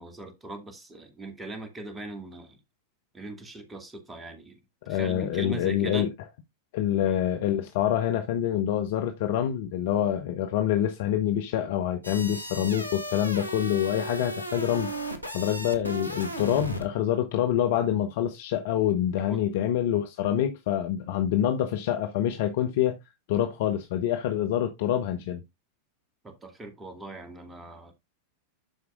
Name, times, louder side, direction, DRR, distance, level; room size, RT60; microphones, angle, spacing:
voice 1, 0.0-2.6 3.1-4.6 4.9-6.1 7.0-7.2 19.3-19.4 26.2-27.9, right 2 dB, 15° right, 2.1 m, -40 dB
voice 2, 4.9-6.1 6.7-14.9 15.3-23.0 23.3-25.4, left 11 dB, 50° left, 0.8 m, -26 dB
sound 1, 12.0-16.9, equal, 90° left, 1.2 m, -35 dB
11.5 x 4.7 x 2.5 m
figure-of-eight pair, 90°, 0 cm